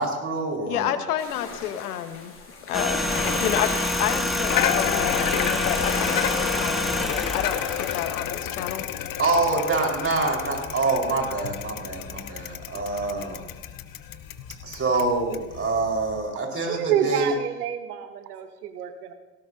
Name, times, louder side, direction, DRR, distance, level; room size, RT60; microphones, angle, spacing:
voice 1, 0.0-0.9 9.2-13.4 14.6-17.3, right 3 dB, 30° right, 1 dB, 4.7 m, -26 dB
voice 2, 0.7-2.3 2.7-3.1 3.4-3.7 4.0-6.8 7.3-8.9, left 11 dB, 85° left, 10 dB, 1.2 m, -29 dB
sound 1, 1.2-8.0, left 4 dB, 30° left, 5.0 m, -37 dB
sound 2, 2.7-9.1 9.3-9.5, equal, ahead, 1.6 m, -28 dB
Bicycle, 3.1-16.2, left 11 dB, 50° left, 1.2 m, -31 dB
voice 3, 16.7-19.1, right 9 dB, 85° right, 9 dB, 1.1 m, -28 dB
18.0 x 17.5 x 2.8 m, 1.2 s
hypercardioid pair, 70°, 44 cm